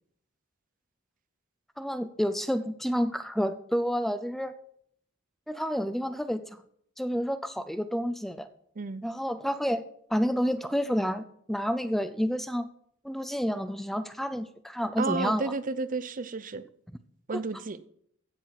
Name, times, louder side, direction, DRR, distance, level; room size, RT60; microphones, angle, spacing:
voice 1, 1.8-4.5 5.5-6.5 7.0-8.5 9.0-9.8 10.1-12.7 13.0-15.5, equal, ahead, 12 dB, 0.5 m, -29 dB
voice 2, 15.0-16.7 17.3-17.8, right 3 dB, 40° right, 14 dB, 0.6 m, -32 dB
15.5 x 7.1 x 5.9 m, 0.67 s
head